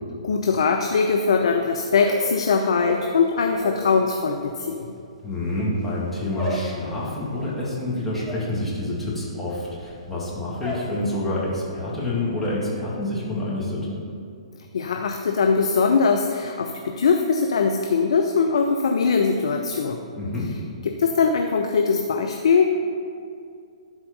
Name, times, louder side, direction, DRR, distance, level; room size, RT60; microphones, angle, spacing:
voice 1, 0.2-4.9 14.7-20.0 20.8-22.7, left 5 dB, 60° left, 4 dB, 0.6 m, -21 dB
sound 1, 1.9-3.9 4.2-11.0 11.3-11.8 12.1-12.6, right 1 dB, 15° right, 1.4 m, -36 dB
voice 2, 5.2-13.9 20.1-20.5, left 1 dB, 5° left, -9 dB, 2.4 m, -27 dB
12.0 x 4.4 x 5.5 m, 2.4 s
figure-of-eight pair, 120°, 3 cm